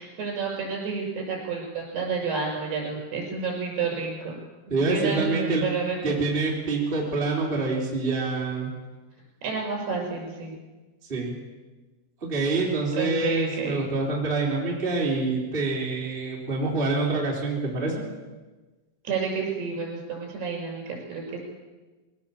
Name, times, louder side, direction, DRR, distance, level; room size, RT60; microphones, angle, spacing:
voice 1, 0.0-6.2 9.4-10.6 13.0-13.9 19.0-21.4, right 5 dB, 65° right, -1 dB, 7.6 m, -30 dB
voice 2, 4.7-5.7 6.0-8.7 11.1-11.4 12.2-18.0, right 3 dB, 15° right, -3 dB, 3.6 m, -26 dB
21.0 x 18.0 x 7.2 m, 1.2 s
omnidirectional pair, 5.0 m